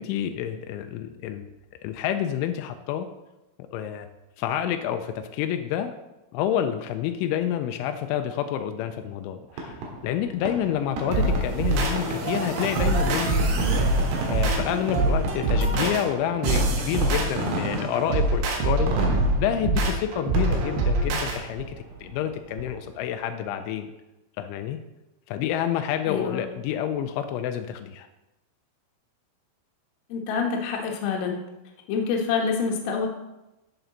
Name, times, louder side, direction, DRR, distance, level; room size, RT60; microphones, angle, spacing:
voice 1, 0.0-1.4 1.8-3.1 3.7-4.1 4.4-5.9 6.3-13.5 14.3-21.8 22.0-23.9 24.4-24.8 25.3-28.1, left 10 dB, 85° left, 8 dB, 3.0 m, -28 dB
Fireworks, 9.5-23.1, right 2 dB, 65° right, 3.5 m, -33 dB
sound 1, 11.1-21.4, right 2 dB, 85° right, 4.1 m, -25 dB
voice 2, 26.1-26.5 30.1-31.4 31.9-33.1, left 5 dB, 65° left, 1 dB, 2.8 m, -26 dB
12.0 x 7.0 x 4.0 m, 0.97 s
omnidirectional pair, 5.5 m